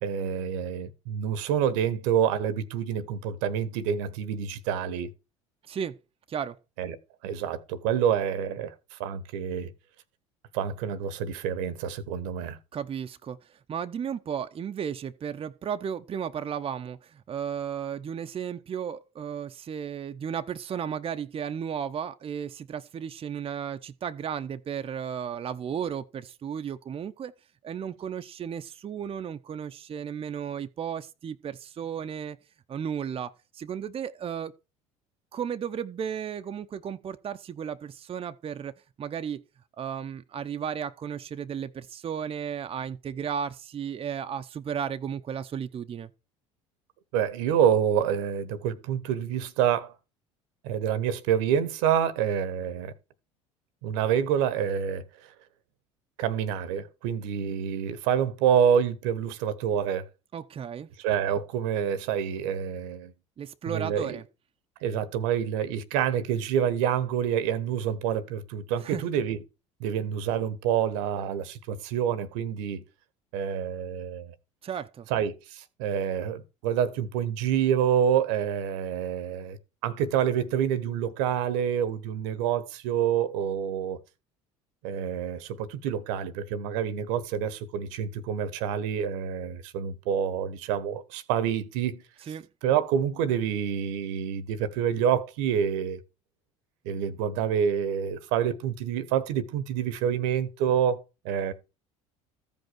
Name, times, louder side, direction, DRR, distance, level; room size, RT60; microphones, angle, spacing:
voice 1, 0.0-5.1 6.8-7.0 7.2-9.7 10.5-12.6 47.1-49.9 50.6-52.9 53.8-55.0 56.2-60.1 61.0-63.1 63.7-64.2 64.8-69.4 69.8-72.8 73.3-74.3 75.1-79.6 79.8-84.0 84.8-92.0 92.6-96.0 96.8-101.5, right 8 dB, 75° right, 1.1 m, -27 dB
voice 2, 5.6-6.0 6.3-6.6 12.7-27.3 27.6-32.4 32.7-34.5 35.3-38.7 39.0-39.4 39.8-46.1 60.3-60.9 63.4-64.2 68.8-69.0 74.6-75.1 92.3-92.5, right 8 dB, 35° right, 0.8 m, -34 dB
14.0 x 5.4 x 6.2 m
hypercardioid pair, 70°, 16 cm